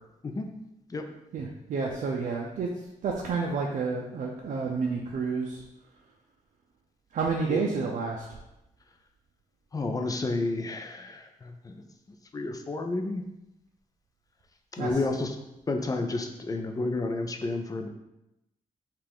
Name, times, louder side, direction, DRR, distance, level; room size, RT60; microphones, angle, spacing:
voice 1, 1.3-2.7 3.0-5.6 7.1-8.3 14.8-14.9, right 4 dB, 75° right, -1 dB, 0.5 m, -30 dB
voice 2, 9.7-11.8 12.3-13.2 14.7-15.4 15.7-17.9, left 2 dB, 25° left, 4 dB, 0.4 m, -31 dB
5.6 x 2.4 x 3.5 m, 0.90 s
wide cardioid pair, 135°, 14 cm